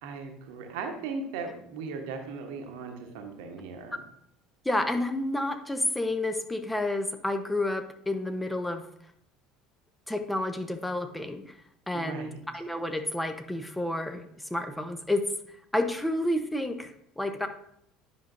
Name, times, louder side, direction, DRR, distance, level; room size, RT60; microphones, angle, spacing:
voice 1, 0.0-4.0 11.9-12.4, right 4 dB, 60° right, 5 dB, 1.1 m, -38 dB
voice 2, 4.6-8.9 10.1-11.5 11.9-15.3 15.7-16.9 17.2-17.5, left 1 dB, 5° left, 7 dB, 0.7 m, -30 dB
10.0 x 5.7 x 2.6 m, 0.72 s
figure-of-eight pair, 65°, 0 cm